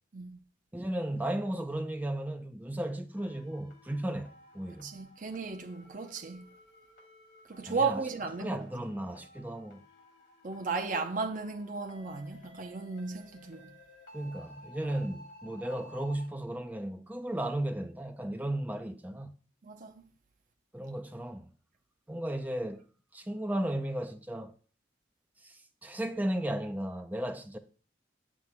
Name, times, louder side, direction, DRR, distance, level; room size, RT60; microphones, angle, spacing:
voice 1, 0.7-4.9 7.7-8.0 8.4-9.8 14.1-19.3 20.7-21.5 22.1-22.8 23.1-24.5 25.4-27.6, right 1 dB, 10° right, 0.5 m, -35 dB
sound 1, 3.2-16.3, equal, 90° left, 2.7 m, -55 dB
voice 2, 4.8-6.5 7.4-8.6 10.4-13.7 19.6-20.1, right 4 dB, 45° right, 0.6 m, -35 dB
7.8 x 7.2 x 2.2 m
head